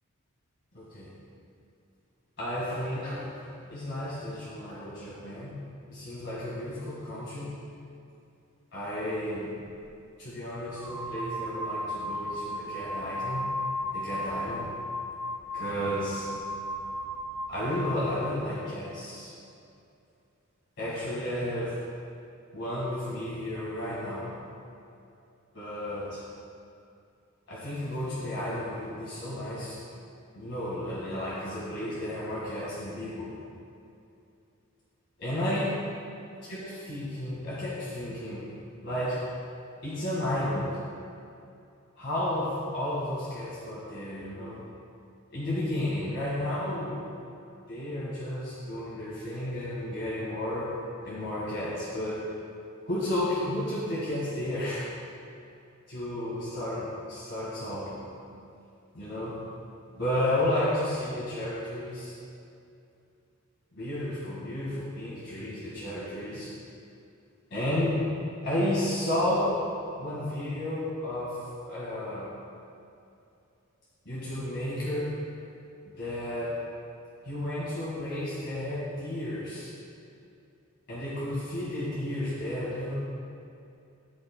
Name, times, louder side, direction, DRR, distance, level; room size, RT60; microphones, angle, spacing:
voice 1, 0.7-1.2 2.4-3.4 3.7-5.6 5.9-7.5 8.7-9.5 10.2-13.5 13.9-14.7 15.5-16.3 17.5-19.3 20.8-21.8 22.5-24.4 25.5-26.2 27.5-29.8 30.3-33.4 35.2-35.9 36.5-38.5 38.8-39.2 39.8-40.8 42.0-44.6 45.3-47.1 47.7-50.8 51.0-52.3 52.9-54.9 55.9-58.1 58.9-59.4 59.9-62.1 63.7-66.5 67.5-68.1 68.4-69.7 70.0-72.3 74.1-75.2 75.8-76.7 77.2-79.7 80.9-82.9, left 1 dB, 55° left, -7 dB, 1.8 m, -32 dB
sound 1, 9.7-9.8 10.6-18.4, left 1 dB, 15° right, 1.1 m, -35 dB
15.5 x 8.8 x 2.2 m, 2.6 s
head